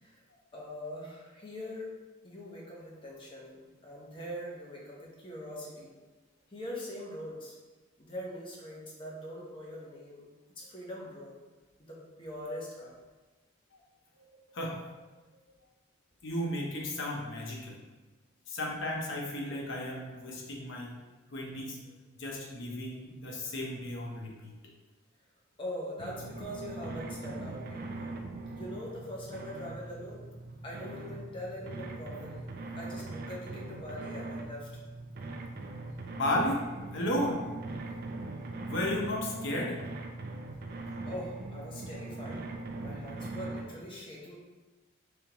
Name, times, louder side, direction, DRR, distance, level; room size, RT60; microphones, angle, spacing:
voice 1, 0.5-1.9 2.2-5.9 6.5-7.5 8.0-10.3 10.6-11.4 11.8-12.9 25.6-28.1 28.5-30.3 30.6-32.5 32.8-34.7 41.0-42.4 42.8-44.4, left 1 dB, 25° left, -4 dB, 0.8 m, -42 dB
voice 2, 16.2-17.8 18.5-21.0 21.3-21.8 22.2-24.5 36.1-36.6 36.9-37.4 38.6-39.8, left 1 dB, 65° left, -1 dB, 0.8 m, -34 dB
sound 1, 26.0-43.6, right 2 dB, 45° right, 0.4 m, -41 dB
3.5 x 3.4 x 2.9 m, 1.2 s
head